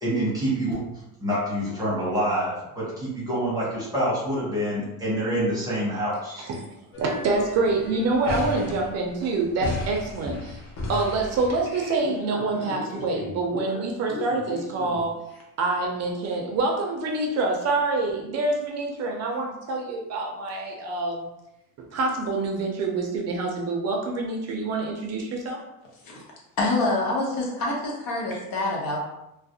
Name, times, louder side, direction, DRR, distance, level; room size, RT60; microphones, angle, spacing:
voice 1, 0.0-0.8 1.2-6.5, right 1 dB, 10° right, -7 dB, 0.8 m, -26 dB
sound 1, 6.9-15.4 16.3-16.4 16.7-16.8 17.1-17.3 17.7-17.8 19.3-19.4, left 2 dB, 40° left, 0.6 m, -36 dB
voice 2, 7.0-10.6 10.9-15.2 15.6-21.3 21.9-25.6, right 3 dB, 45° right, 1 dB, 0.4 m, -26 dB
voice 3, 26.6-29.1, left 2 dB, 70° left, -2 dB, 0.8 m, -26 dB
2.3 x 2.0 x 2.6 m, 0.89 s
cardioid pair, 155°, 35 cm